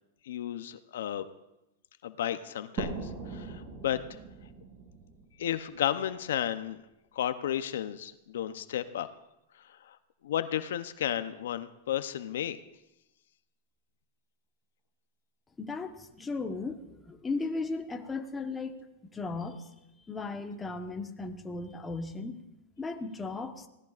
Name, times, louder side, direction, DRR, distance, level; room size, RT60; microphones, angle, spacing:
voice 1, 0.2-1.2 2.0-4.2 5.4-6.8 7.1-9.1 9.6-10.0 10.2-12.6, left 11 dB, 80° left, 12 dB, 0.7 m, -33 dB
sound 1, 2.8-6.3, right 4 dB, 35° right, 3.1 m, -41 dB
voice 2, 15.6-18.8 19.1-19.7 20.1-22.4 22.8-23.7, left 3 dB, 15° left, 5 dB, 1.2 m, -36 dB
23.5 x 17.0 x 2.5 m, 0.92 s
supercardioid pair, 135°, 0 cm